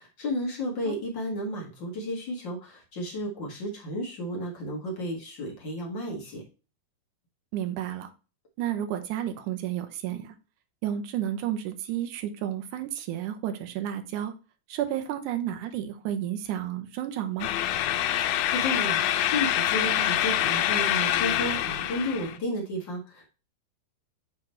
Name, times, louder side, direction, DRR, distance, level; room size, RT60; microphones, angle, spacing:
voice 1, 0.0-6.4 18.2-23.2, left 1 dB, 45° left, -1 dB, 1.6 m, -33 dB
voice 2, 7.5-8.1 8.6-10.3 10.8-14.3 14.7-17.5, right 11 dB, 80° right, 7 dB, 1.9 m, -31 dB
sound 1, 17.4-22.4, left 12 dB, 85° left, 2.4 m, -26 dB
6.8 x 3.7 x 4.2 m, 0.33 s
omnidirectional pair, 4.3 m